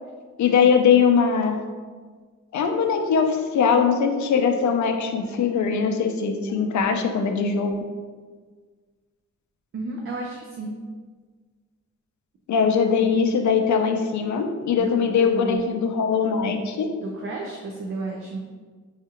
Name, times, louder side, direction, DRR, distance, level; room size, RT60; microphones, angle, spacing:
voice 1, 0.4-1.6 2.5-7.8 12.5-16.9, left 6 dB, 70° left, 5 dB, 0.5 m, -21 dB
voice 2, 9.7-10.7 14.8-15.8 17.0-18.4, right 2 dB, 45° right, 0 dB, 0.4 m, -32 dB
5.7 x 2.4 x 2.9 m, 1.5 s
wide cardioid pair, 175°, 29 cm